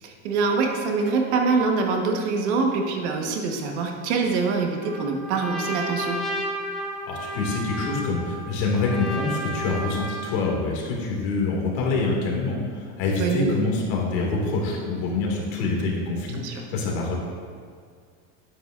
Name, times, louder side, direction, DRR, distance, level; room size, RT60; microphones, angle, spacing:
voice 1, 0.0-6.2 13.2-13.5 16.3-16.7, right 4 dB, 70° right, 3 dB, 1.3 m, -24 dB
Trumpet, 4.8-10.5, equal, ahead, 0.6 m, -32 dB
voice 2, 7.1-17.2, left 3 dB, 65° left, -2 dB, 2.2 m, -26 dB
10.0 x 8.9 x 2.5 m, 2.1 s
supercardioid pair, 165°, 35 cm